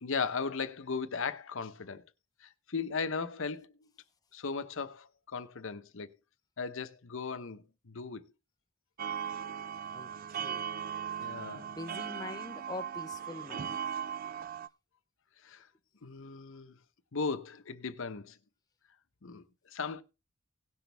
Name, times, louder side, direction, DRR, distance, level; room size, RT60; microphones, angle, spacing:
voice 1, 0.0-2.0 2.4-3.7 4.3-6.1 6.6-8.2 11.2-11.7 15.4-15.7 16.0-16.7 17.1-18.4 19.2-19.4 19.7-20.0, left 5 dB, 65° left, 0.9 m, -37 dB
sound 1, 9.0-14.7, right 8 dB, 40° right, 0.5 m, -38 dB
voice 2, 9.9-10.7 11.5-13.8, left 2 dB, 20° left, 0.5 m, -44 dB
18.0 x 6.1 x 3.4 m
head